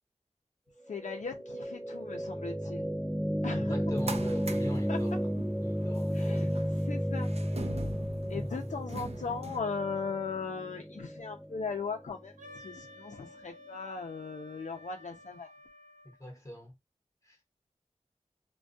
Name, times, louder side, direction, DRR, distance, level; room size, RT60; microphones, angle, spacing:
voice 1, 0.9-2.9 3.4-3.7 4.9-5.0 6.1-6.5 6.8-7.3 8.3-15.5, left 5 dB, 75° left, 0.5 m, -38 dB
sound 1, 0.9-12.9, equal, 5° left, 0.3 m, -33 dB
voice 2, 3.6-5.2 5.6-6.6 8.3-8.7 16.0-16.7 17.2-17.4, equal, 25° left, 1.0 m, -40 dB
sound 2, 3.7-9.6, right 2 dB, 55° right, 0.5 m, -43 dB
Wind instrument woodwind instrument, 12.4-16.2, left 1 dB, 80° right, 0.8 m, -53 dB
2.3 x 2.2 x 2.5 m
wide cardioid pair, 70°, 13 cm